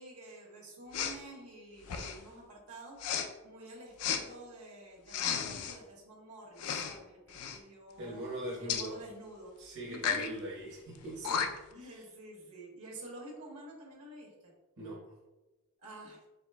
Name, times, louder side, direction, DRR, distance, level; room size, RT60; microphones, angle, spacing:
voice 1, 0.0-8.2 8.6-9.5 9.8-10.3 11.2-14.5 15.8-16.2, right 1 dB, 70° right, -2 dB, 1.3 m, -49 dB
Respiratory sounds, 0.9-1.2 1.8-2.3 3.0-3.3 4.0-4.2 5.1-5.8 6.6-7.0 7.3-7.6 8.7-8.9 9.9-10.3 10.9-11.0 11.2-11.7, left 7 dB, 85° left, 0.4 m, -33 dB
voice 2, 8.0-9.0 9.6-11.4 11.8-12.0 14.8-15.0, right 1 dB, 55° right, -7 dB, 1.0 m, -41 dB
4.8 x 4.1 x 2.2 m, 1.1 s
head